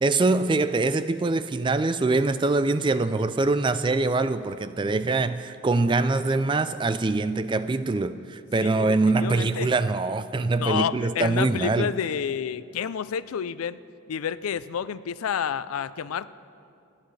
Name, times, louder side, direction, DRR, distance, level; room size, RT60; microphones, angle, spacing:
voice 1, 0.0-11.9, right 3 dB, 20° right, 0.3 m, -24 dB
voice 2, 8.6-9.7 10.6-13.8 14.1-16.3, left 7 dB, 90° left, 0.4 m, -29 dB
29.0 x 10.5 x 3.3 m
head